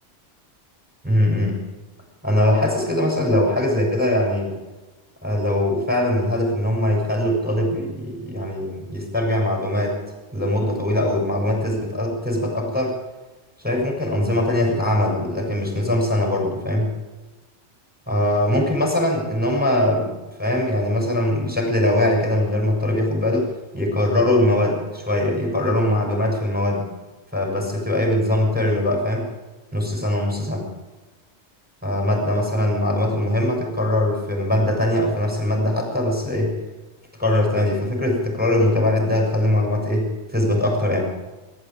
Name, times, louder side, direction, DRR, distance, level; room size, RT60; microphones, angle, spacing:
voice 1, 1.0-1.6 2.2-4.6 5.2-10.0 10.3-13.0 13.6-16.9 18.1-20.1 20.4-26.9 27.3-29.3 29.7-30.7 31.8-36.6 37.2-41.1, left 1 dB, 10° right, 1 dB, 6.9 m, -21 dB
22.5 x 13.0 x 9.0 m, 1.2 s
omnidirectional pair, 1.2 m